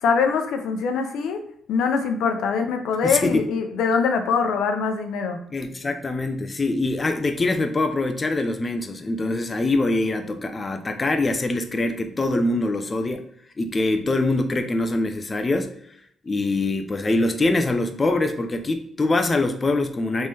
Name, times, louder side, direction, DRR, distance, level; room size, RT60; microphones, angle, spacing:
voice 1, 0.0-1.4 1.7-5.4, left 5 dB, 80° left, 5 dB, 0.5 m, -23 dB
voice 2, 3.0-3.4 5.5-13.2 13.6-15.7 16.2-20.3, left 2 dB, 25° left, 7 dB, 0.4 m, -23 dB
3.6 x 3.2 x 2.7 m, 0.70 s
cardioid pair, 90°, 0 cm